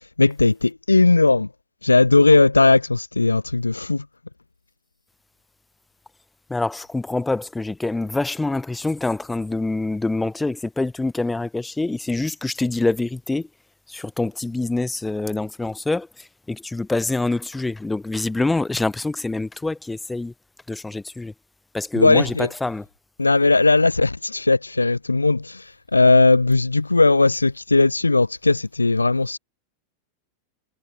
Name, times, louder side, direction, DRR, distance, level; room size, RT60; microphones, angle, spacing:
voice 1, 0.2-1.5 1.8-4.1 21.9-22.5 23.2-29.4, left 3 dB, 80° left, 0.6 m, -17 dB
voice 2, 6.5-13.5 13.9-20.3 20.7-21.3 21.7-22.8, left 2 dB, 5° left, 0.6 m, -25 dB
figure-of-eight pair, 90°, 0 cm